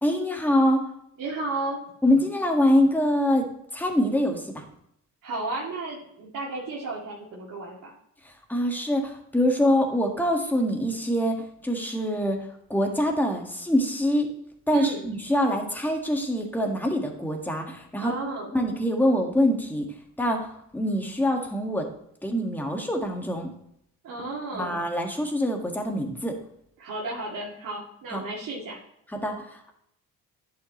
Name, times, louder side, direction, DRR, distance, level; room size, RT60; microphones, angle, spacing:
voice 1, 0.0-0.9 2.0-4.6 8.2-14.3 14.7-18.1 18.5-19.9 20.2-21.9 22.2-23.5 24.5-26.4 28.1-28.2 29.1-29.7, left 1 dB, 5° left, 2 dB, 1.6 m, -25 dB
voice 2, 1.2-1.8 5.2-7.9 14.7-15.1 18.0-18.5 24.0-24.8 26.8-28.8, right 2 dB, 75° right, -6 dB, 2.2 m, -33 dB
10.5 x 5.7 x 3.0 m, 0.73 s
cardioid pair, 90°, 32 cm